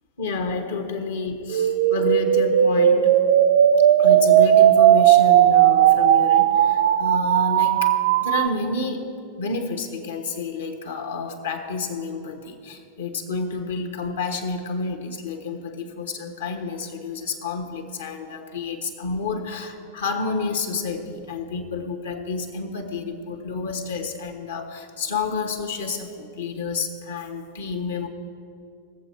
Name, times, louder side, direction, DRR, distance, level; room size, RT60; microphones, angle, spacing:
voice 1, 0.2-3.2 4.0-28.1, left 4 dB, 65° left, 5 dB, 1.3 m, -29 dB
sound 1, 1.5-8.5, right 11 dB, 55° right, 0.4 m, -16 dB
19.5 x 7.6 x 4.4 m, 2.5 s
figure-of-eight pair, 90°, 0 cm